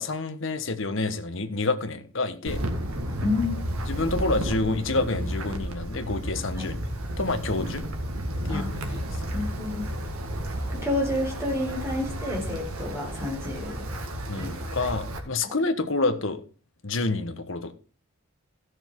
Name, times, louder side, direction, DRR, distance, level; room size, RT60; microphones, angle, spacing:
voice 1, 0.0-2.6 3.9-6.8 7.2-7.9 8.4-8.6 8.9-9.3 14.3-16.4 16.8-17.7, left 3 dB, 60° left, 1.3 m, -28 dB
Wind, 2.5-15.2, right 1 dB, 85° right, 1.9 m, -32 dB
voice 2, 3.2-3.5 6.5-6.7 8.5-8.7 9.3-9.9 10.7-13.8 14.4-14.9, left 2 dB, 10° right, 4.0 m, -30 dB
14.5 x 6.4 x 4.6 m
head